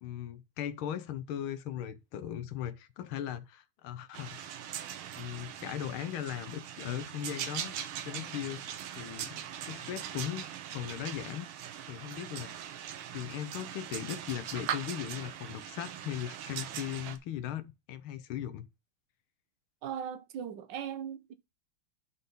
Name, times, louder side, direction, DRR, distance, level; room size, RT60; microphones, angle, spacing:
voice 1, 0.0-4.6 5.2-7.7 8.0-8.6 9.0-9.3 9.6-10.5 10.7-11.5 11.9-12.5 13.1-18.6, left 10 dB, 85° left, 1.7 m, -38 dB
sound 1, 4.1-17.2, right 9 dB, 90° right, 1.7 m, -41 dB
voice 2, 19.8-21.3, right 8 dB, 65° right, 1.3 m, -38 dB
10.5 x 4.2 x 5.2 m
omnidirectional pair, 2.2 m